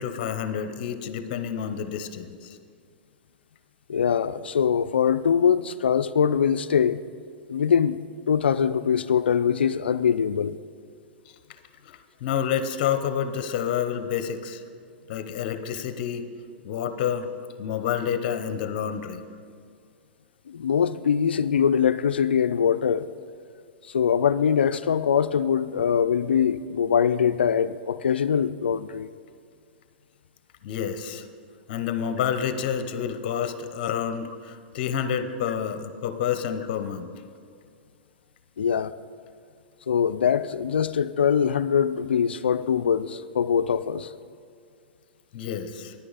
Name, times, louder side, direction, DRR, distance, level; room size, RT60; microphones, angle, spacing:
voice 1, 0.0-2.3 11.9-14.6 15.1-16.3 16.6-17.3 17.6-19.2 30.6-31.3 31.7-37.1 45.3-45.9, left 8 dB, 55° left, 0.8 m, -29 dB
voice 2, 3.9-7.0 7.5-8.0 8.3-10.6 20.5-23.1 23.9-29.1 38.6-38.9 39.9-44.1, left 7 dB, 85° left, 0.4 m, -23 dB
9.9 x 9.8 x 4.1 m
hypercardioid pair, 115°, 6 cm